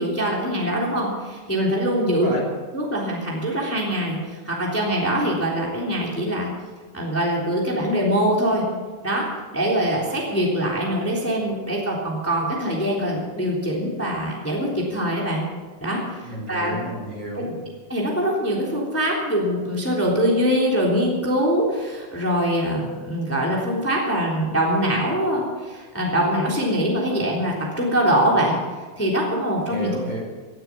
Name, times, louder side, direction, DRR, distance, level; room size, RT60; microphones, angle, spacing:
voice 1, 0.0-2.3 2.7-6.5 6.9-8.6 9.0-9.3 9.5-15.4 15.8-16.8 17.3-17.5 17.9-28.6 29.0-30.0, equal, 5° left, -3 dB, 3.0 m, -23 dB
voice 2, 2.1-2.4 16.2-17.5 29.7-30.2, right 1 dB, 45° right, -3 dB, 4.4 m, -31 dB
17.5 x 12.5 x 6.2 m, 1.3 s
omnidirectional pair, 3.6 m